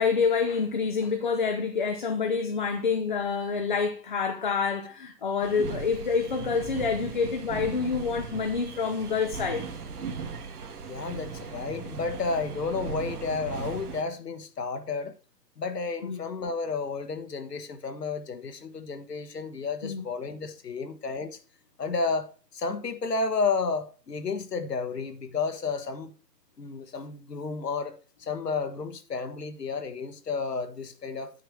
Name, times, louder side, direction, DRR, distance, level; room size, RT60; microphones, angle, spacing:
voice 1, 0.0-9.7 16.0-16.2 19.8-20.0, left 5 dB, 30° left, 0.6 m, -27 dB
sound 1, 5.4-14.0, right 5 dB, 65° right, 1.9 m, -38 dB
voice 2, 10.9-15.1 15.6-21.4 21.8-26.1 26.6-31.4, left 4 dB, 70° left, 1.4 m, -32 dB
9.2 x 5.8 x 4.8 m
figure-of-eight pair, 140°, 50 cm